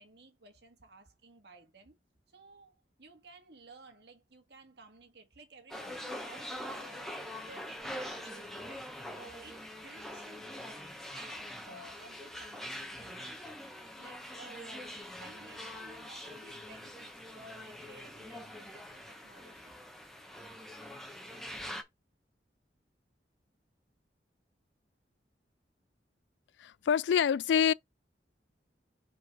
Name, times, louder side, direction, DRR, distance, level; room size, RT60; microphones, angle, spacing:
voice 1, 0.0-2.0 2.3-7.2 7.5-8.9 9.1-10.9 11.1-13.3 14.0-19.8, right 2 dB, 70° right, 1.9 m, -55 dB
sound 1, 5.7-21.8, equal, ahead, 1.1 m, -44 dB
voice 2, 26.6-27.7, left 8 dB, 80° left, 0.3 m, -26 dB
4.7 x 4.2 x 4.9 m
head